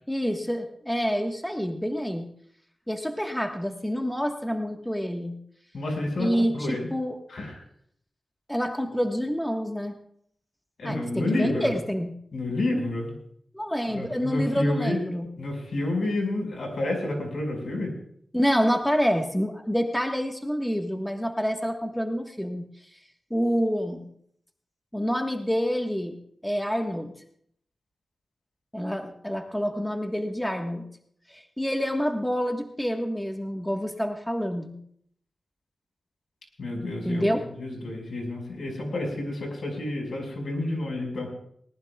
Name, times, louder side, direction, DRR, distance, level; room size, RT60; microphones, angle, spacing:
voice 1, 0.1-2.3 2.9-5.3 6.2-7.2 8.5-10.0 10.8-12.1 13.5-15.3 18.3-22.7 23.3-24.0 24.9-26.1 26.4-27.1 28.7-30.8 31.3-34.7 37.0-37.4, equal, 5° left, 3 dB, 1.5 m, -27 dB
voice 2, 5.7-6.9 7.3-7.5 10.8-11.7 12.3-13.1 13.9-15.0 15.4-17.9 36.6-41.3, left 2 dB, 75° left, 2 dB, 5.4 m, -29 dB
20.0 x 19.0 x 2.4 m, 0.68 s
cardioid pair, 65°, 0 cm